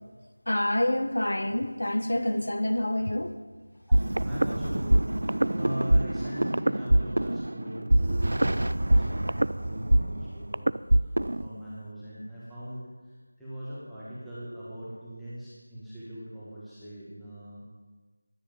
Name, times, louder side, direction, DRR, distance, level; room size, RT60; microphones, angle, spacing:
voice 1, 0.5-3.4, left 1 dB, 80° left, 1.4 m, -27 dB
voice 2, 3.9-5.1 5.5-8.4 8.7-10.7 11.4-12.8 13.4-17.6, equal, ahead, 1.9 m, -40 dB
sound 1, 3.9-11.5, right 1 dB, 60° right, 0.5 m, -24 dB
23.0 x 10.0 x 5.5 m
figure-of-eight pair, 180°, 0 cm